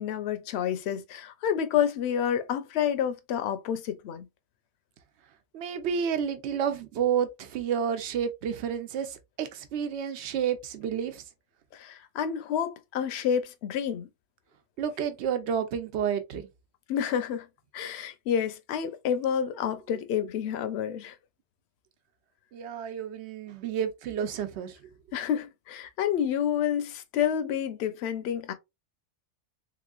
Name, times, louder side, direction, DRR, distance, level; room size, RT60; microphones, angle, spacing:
voice 1, 0.0-4.3 11.7-14.1 16.9-17.5 17.7-21.1 25.1-28.5, left 9 dB, 70° left, 0.8 m, -29 dB
voice 2, 5.5-11.2 14.8-16.5 22.5-24.8, right 8 dB, 70° right, 0.9 m, -30 dB
3.5 x 3.0 x 2.3 m
omnidirectional pair, 1.2 m